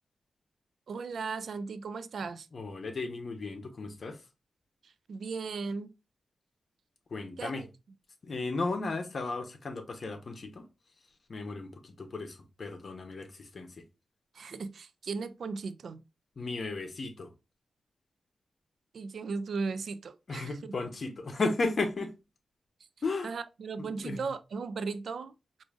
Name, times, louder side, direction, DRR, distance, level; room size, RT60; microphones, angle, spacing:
voice 1, 0.9-2.5 5.1-5.9 7.4-7.7 14.3-16.0 18.9-20.5 23.2-25.3, right 4 dB, 80° right, 0.3 m, -36 dB
voice 2, 2.5-4.2 7.1-7.7 8.2-10.7 11.3-13.8 16.4-17.3 20.3-22.1 23.0-23.3 23.8-24.3, left 3 dB, 60° left, 0.8 m, -35 dB
4.8 x 2.5 x 2.4 m
wide cardioid pair, 85°, 0 cm